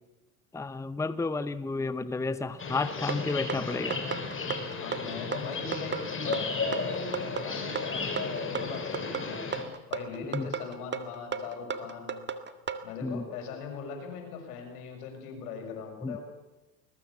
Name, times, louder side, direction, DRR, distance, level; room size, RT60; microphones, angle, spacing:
voice 1, 0.5-4.0 10.3-10.5 13.0-13.2 16.0-16.2, left 3 dB, 5° left, 14 dB, 0.9 m, -31 dB
sound 1, 2.6-9.6, left 4 dB, 30° left, 5.8 m, -34 dB
sound 2, 3.1-12.8, right 6 dB, 25° right, 1.9 m, -34 dB
voice 2, 4.8-9.4 9.9-12.2 12.8-16.2, left 5 dB, 80° left, 3 dB, 7.1 m, -40 dB
21.0 x 21.0 x 7.4 m, 1.0 s
hypercardioid pair, 90°, 44 cm